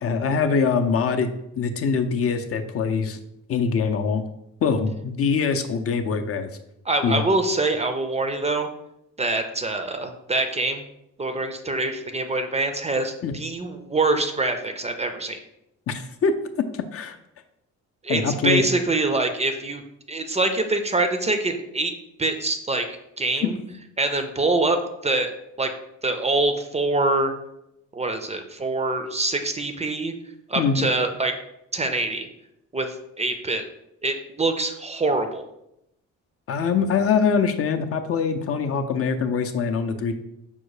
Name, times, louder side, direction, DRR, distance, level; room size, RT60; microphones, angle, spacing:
voice 1, 0.0-3.2 3.5-4.2 4.6-6.5 7.0-7.2 13.2-13.3 15.9-16.3 16.9-17.2 18.1-18.7 23.4-23.5 30.6-30.9 36.5-40.1, left 5 dB, 50° left, 7 dB, 0.5 m, -23 dB
voice 2, 6.9-8.7 9.2-10.8 11.2-15.4 18.0-19.8 20.1-21.9 22.2-23.6 24.0-25.3 25.6-25.7 26.0-27.3 27.9-30.1 30.5-31.4 31.7-32.3 32.7-33.6 34.0-35.4, right 2 dB, 20° right, 7 dB, 0.5 m, -24 dB
5.3 x 2.1 x 4.7 m, 0.82 s
cardioid pair, 90°, 30 cm